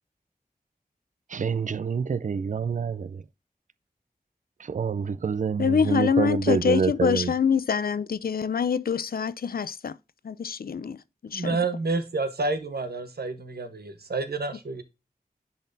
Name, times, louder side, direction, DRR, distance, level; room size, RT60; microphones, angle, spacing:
voice 1, 1.3-3.1 4.7-7.3, right 6 dB, 55° right, 0.4 m, -27 dB
voice 2, 5.6-10.0 10.2-11.0 11.2-11.6, left 6 dB, 70° left, 0.4 m, -25 dB
voice 3, 11.3-14.8, right 3 dB, 85° right, 1.1 m, -29 dB
10.0 x 4.2 x 2.6 m
wide cardioid pair, 50°, 16 cm